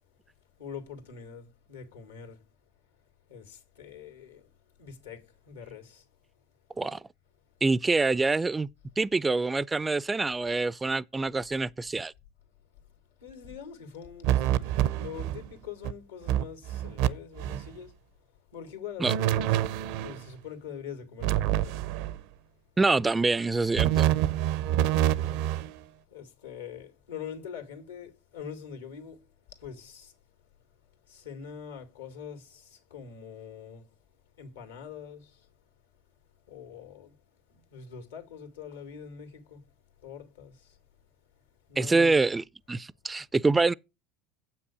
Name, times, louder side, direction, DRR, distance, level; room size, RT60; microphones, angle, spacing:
voice 1, 0.6-2.4 3.3-4.5 4.8-6.0 7.9-8.0 13.2-18.0 18.5-21.8 24.7-25.5 26.1-29.2 29.6-30.1 31.1-33.9 34.4-35.5 36.5-37.2 37.5-39.6 40.0-40.8 41.7-42.2, left 7 dB, 90° left, 2.3 m, -44 dB
voice 2, 7.6-8.7 9.0-12.1 19.0-19.1 22.8-24.1 41.8-43.7, right 3 dB, 15° right, 0.3 m, -25 dB
sound 1, 14.2-15.5 15.8-15.9 16.3-17.1 17.4-17.7 19.0-20.2 21.2-22.2 23.7-25.7, right 12 dB, 65° right, 0.6 m, -26 dB
7.8 x 6.1 x 4.8 m
hypercardioid pair, 80°, 0 cm